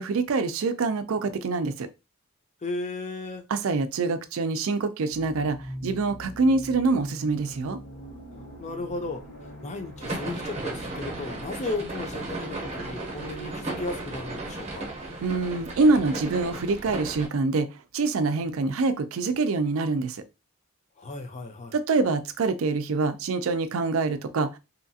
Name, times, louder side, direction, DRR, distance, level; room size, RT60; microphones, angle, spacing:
voice 1, 0.0-1.9 3.5-7.8 15.2-17.7 17.9-20.2 21.7-24.6, right 3 dB, 75° right, 0.4 m, -25 dB
voice 2, 2.6-3.4 8.6-9.2 9.6-14.9 21.0-21.7, left 2 dB, 35° left, 0.5 m, -35 dB
sound 1, 5.1-16.6, right 1 dB, 85° left, 1.2 m, -44 dB
sound 2, 10.0-17.3, right 2 dB, 30° right, 0.8 m, -35 dB
2.8 x 2.4 x 2.7 m
head